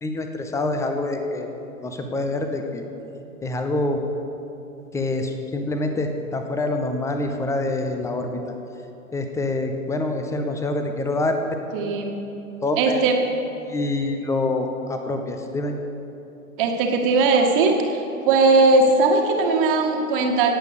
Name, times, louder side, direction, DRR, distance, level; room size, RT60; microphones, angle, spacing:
voice 1, 0.0-1.5 1.8-2.8 3.4-4.0 4.9-8.3 9.1-11.4 12.6-13.0 13.6-15.7, left 2 dB, 5° left, 5 dB, 0.9 m, -26 dB
voice 2, 11.7-12.1 12.8-13.2 16.6-17.7 18.2-20.5, right 3 dB, 35° right, 3 dB, 1.9 m, -18 dB
18.0 x 8.3 x 6.7 m, 2.9 s
figure-of-eight pair, 105°, 43 cm